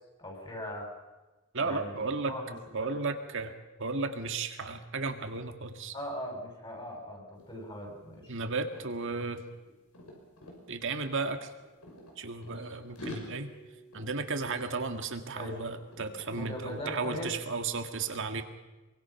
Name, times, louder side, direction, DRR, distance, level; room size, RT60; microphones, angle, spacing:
voice 1, 0.2-0.9 1.6-2.5 2.8-3.0 5.9-8.3 15.3-15.6 16.3-17.3, equal, 25° left, 0 dB, 6.5 m, -40 dB
voice 2, 1.5-2.3 2.7-3.5 3.8-5.9 8.3-9.4 10.7-11.5 12.2-13.5 13.9-18.4, right 4 dB, 60° right, 6 dB, 1.9 m, -34 dB
sound 1, 7.4-7.5 7.8-10.6 11.4-12.7 12.9-15.5 15.8-16.5 16.9-17.2, left 1 dB, 85° left, 6.2 m, -47 dB
24.5 x 24.0 x 5.9 m, 1.1 s
head